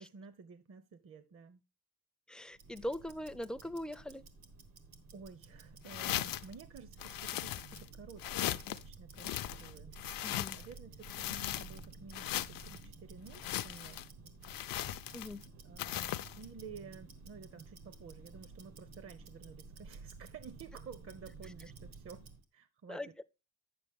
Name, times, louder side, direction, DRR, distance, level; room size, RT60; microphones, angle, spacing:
voice 1, 0.0-1.6 2.7-2.8 5.1-10.0 10.3-14.1 15.6-22.2 22.5-23.2, right 5 dB, 40° right, 0.6 m, -52 dB
voice 2, 2.3-4.2 10.2-10.6 15.1-15.4 22.9-23.2, left 1 dB, ahead, 0.4 m, -41 dB
Tick-tock, 2.5-22.4, right 4 dB, 80° right, 1.5 m, -53 dB
sound 1, 5.8-6.5 7.0-7.9 8.2-8.8 9.2-10.7 11.0-11.8 12.1-12.8 13.3-14.1 14.4-15.4 15.8-16.4, left 13 dB, 65° left, 0.5 m, -38 dB
8.9 x 7.0 x 3.5 m
cardioid pair, 100°, 37 cm